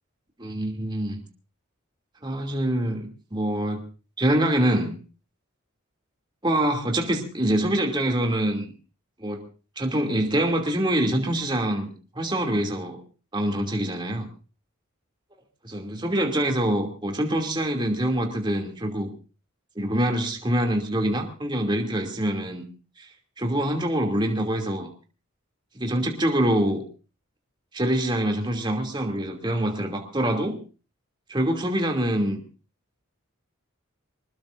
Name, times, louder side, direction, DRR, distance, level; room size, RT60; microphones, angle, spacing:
voice 1, 0.4-1.2 2.2-3.8 4.2-5.0 6.4-8.7 9.2-9.4 9.8-13.0 13.3-14.3 15.6-19.1 19.8-22.6 23.0-23.1 23.4-24.9 25.7-26.8 27.7-30.6 31.3-32.4, right 1 dB, 20° right, 2 dB, 2.8 m, -25 dB
25.0 x 20.5 x 2.6 m, 0.35 s
head